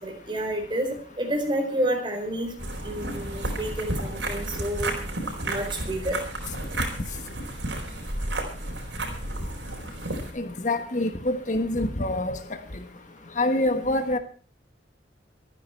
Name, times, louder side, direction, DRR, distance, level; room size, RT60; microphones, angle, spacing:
voice 1, 0.0-2.5 2.8-4.9 5.4-6.2, right 1 dB, 25° right, 3 dB, 4.6 m, -29 dB
sound 1, 2.6-10.3, right 2 dB, 85° right, 4.5 m, -32 dB
voice 2, 10.3-12.4 13.4-14.2, left 1 dB, 45° left, 8 dB, 1.3 m, -25 dB
24.5 x 9.8 x 4.5 m, 0.38 s
head